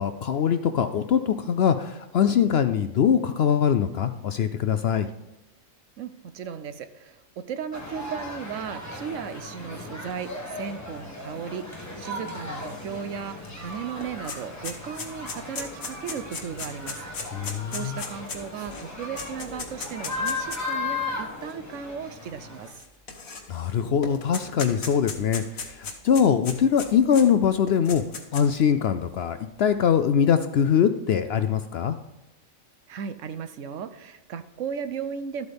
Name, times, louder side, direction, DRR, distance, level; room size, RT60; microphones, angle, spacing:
voice 1, 0.0-5.1 17.3-18.0 23.5-28.0 28.3-32.0, left 8 dB, 65° left, 10 dB, 0.7 m, -22 dB
voice 2, 6.0-11.7 12.0-17.0 17.7-22.8 32.9-35.5, right 7 dB, 70° right, 11 dB, 1.0 m, -36 dB
sound 1, 7.7-22.7, left 3 dB, 10° left, 1.9 m, -36 dB
sound 2, 13.5-13.6 13.8-20.7 21.5-21.6 22.7-23.7 24.0-27.3 27.7-28.6, left 5 dB, 90° left, 1.7 m, -36 dB
12.5 x 8.1 x 3.4 m, 0.97 s
omnidirectional pair, 1.4 m